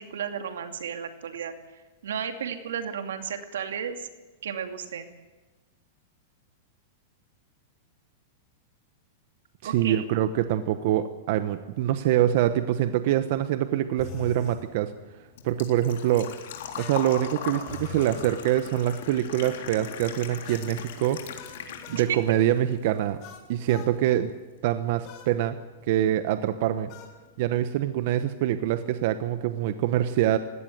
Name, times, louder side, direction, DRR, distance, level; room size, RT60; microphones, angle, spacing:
voice 1, 0.0-1.5 2.0-4.1 4.4-5.1 9.6-10.0 21.9-22.2, right 8 dB, 90° right, 7 dB, 2.6 m, -33 dB
voice 2, 9.6-14.9 15.4-16.3 16.8-21.2 21.9-23.2 23.5-24.3 24.6-25.5 25.9-26.9 27.4-30.4, right 12 dB, 55° right, 10 dB, 1.1 m, -25 dB
sound 1, 14.0-14.6 16.8-18.3 20.4-22.1 23.2-23.9 25.0-25.3 26.9-27.2, left 7 dB, 40° left, 3.7 m, -43 dB
Engine / Trickle dribble / Fill (with liquid), 14.5-22.4 22.7-23.7 24.0-24.1 26.0-26.1 26.2-26.6 27.0-27.1 27.3-27.4, left 8 dB, 70° left, 3.7 m, -39 dB
20.0 x 17.0 x 9.3 m, 1.3 s
supercardioid pair, 150°, 0 cm